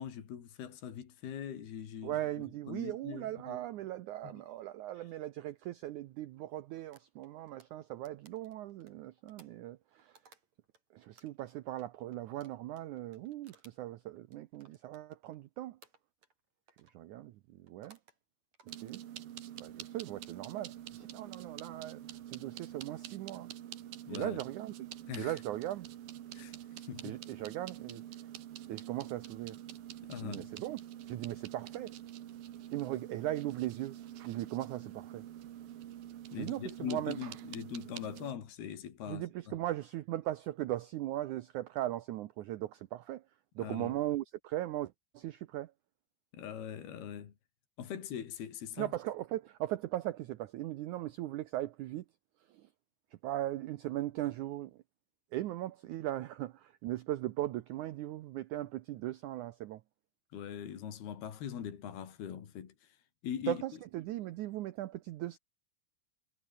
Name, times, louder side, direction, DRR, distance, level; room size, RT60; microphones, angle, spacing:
voice 1, 0.0-3.6 4.2-4.3 5.0-5.1 24.1-24.4 25.1-25.4 26.3-27.2 30.1-30.5 36.3-39.3 43.6-44.0 46.3-47.3 47.8-48.9 60.3-63.0 63.2-63.6, left 9 dB, 80° left, 4.8 m, -42 dB
voice 2, 2.0-10.2 10.9-15.8 16.9-18.0 18.8-19.0 19.6-22.0 22.3-23.5 24.1-24.9 25.2-25.9 27.0-28.0 28.7-29.6 30.2-30.8 31.1-32.0 32.7-34.0 34.2-35.2 36.3-37.2 39.1-43.2 43.6-45.7 48.8-52.1 52.5-52.7 53.2-54.8 55.3-59.8 63.5-65.4, right 14 dB, 85° right, 1.7 m, -38 dB
sound 1, 6.9-10.8 11.2-15.4 15.8-16.4 16.7-17.0 17.7-18.2 18.5-19.7 20.2-20.6, right 5 dB, 45° right, 5.6 m, -64 dB
sound 2, 18.7-38.3, right 12 dB, 70° right, 3.2 m, -47 dB
omnidirectional pair, 4.5 m